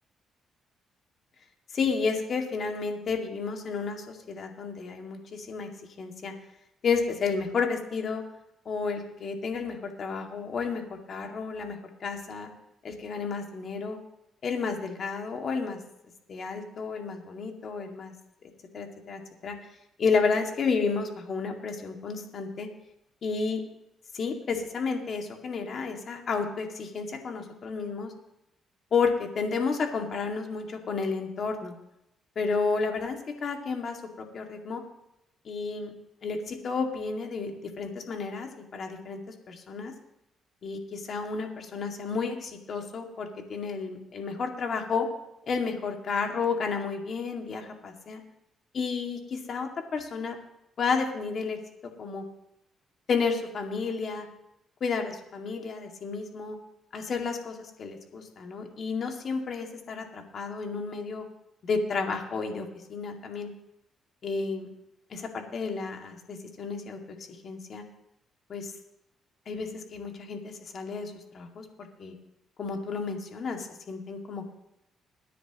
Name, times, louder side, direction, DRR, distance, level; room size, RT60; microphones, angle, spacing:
voice 1, 1.7-5.7 6.0-6.3 6.8-8.2 8.7-12.5 12.8-14.0 14.4-15.8 16.3-18.1 18.7-19.6 20.0-22.7 23.2-23.6 24.1-28.1 28.9-31.7 32.4-34.8 35.5-35.9 36.2-39.2 39.5-39.9 40.6-45.1 45.5-48.2 48.7-50.4 50.8-51.6 52.0-52.2 53.1-54.3 54.8-56.6 56.9-61.3 61.6-63.5 64.2-64.7 65.1-67.0 67.4-67.8 68.5-68.7 69.5-71.6 72.0-72.1 72.6-74.5, left 5 dB, 55° left, 3 dB, 2.2 m, -31 dB
22.5 x 10.0 x 3.1 m, 0.84 s
cardioid pair, 90°, 0 cm